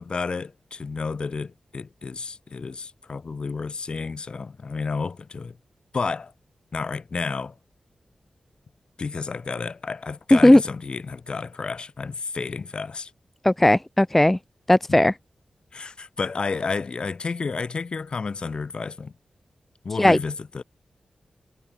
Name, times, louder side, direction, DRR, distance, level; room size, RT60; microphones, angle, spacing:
voice 1, 0.0-5.6 5.9-6.3 6.7-7.5 9.0-13.1 14.9-15.0 15.7-19.1 19.8-20.6, left 4 dB, 50° left, 1.0 m, -31 dB
voice 2, 10.3-10.6 13.4-14.4 14.7-15.1 20.0-20.2, left 1 dB, 10° left, 0.3 m, -16 dB
wide cardioid pair, 135°, 2 cm